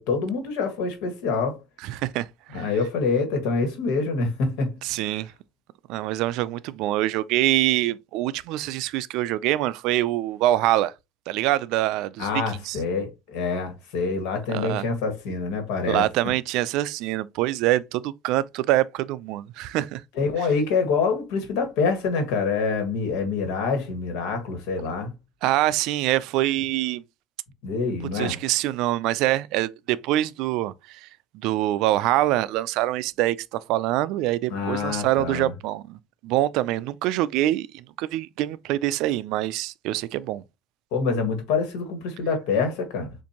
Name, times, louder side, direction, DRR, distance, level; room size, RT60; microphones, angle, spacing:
voice 1, 0.0-1.6 2.5-4.8 12.2-16.3 20.1-25.1 27.6-28.4 34.5-35.5 40.9-43.1, left 4 dB, 80° left, 1.7 m, -26 dB
voice 2, 1.8-2.7 4.8-5.3 5.9-10.9 11.3-12.3 12.6-12.8 14.5-14.9 15.8-20.0 20.4-20.5 25.4-27.0 28.1-31.1 31.3-40.4, right 15 dB, 65° right, 0.3 m, -25 dB
6.9 x 2.6 x 2.9 m
cardioid pair, 175°, 0 cm